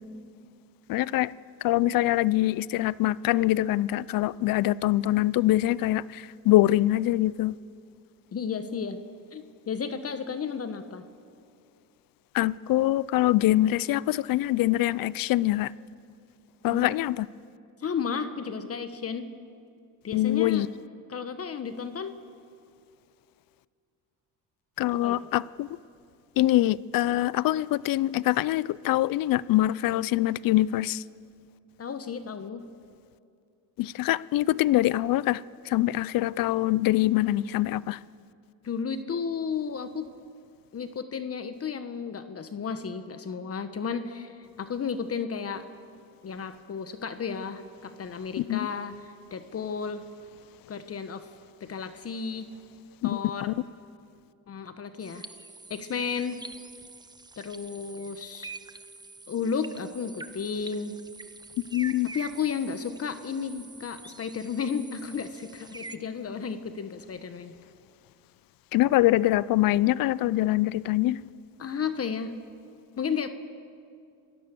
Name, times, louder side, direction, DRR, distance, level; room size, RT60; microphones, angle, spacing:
voice 1, 0.9-1.3 1.6-7.6 12.3-15.7 16.6-17.3 20.1-20.7 24.8-25.8 26.4-31.0 33.8-38.0 48.4-48.6 53.0-53.2 53.5-53.6 61.7-62.1 68.7-71.2, left 15 dB, 65° left, 21 dB, 0.5 m, -24 dB
voice 2, 8.3-9.0 9.3-11.0 16.6-17.0 17.8-19.3 20.0-20.7 21.1-22.1 25.0-25.2 31.8-32.6 38.6-40.1 40.7-45.7 46.2-48.9 49.3-50.0 50.7-51.3 51.6-52.5 53.0-53.5 54.5-55.3 55.7-56.4 57.4-58.5 59.3-60.9 62.1-67.5 71.6-72.3 73.0-73.3, left 6 dB, 40° left, 10 dB, 1.2 m, -33 dB
sound 1, 55.0-66.0, right 3 dB, 10° right, 0.9 m, -46 dB
27.5 x 16.5 x 6.9 m, 2.4 s
cardioid pair, 95°, 37 cm